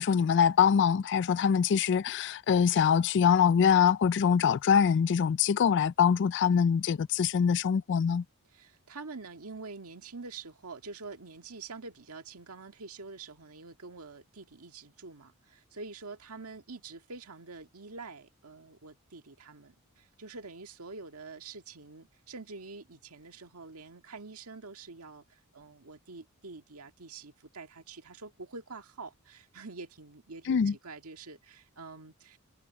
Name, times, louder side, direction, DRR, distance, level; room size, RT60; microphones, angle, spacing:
voice 1, 0.0-8.2 30.5-30.7, left 7 dB, 55° left, 0.3 m, -24 dB
voice 2, 8.5-32.4, right 4 dB, 85° right, 1.8 m, -46 dB
head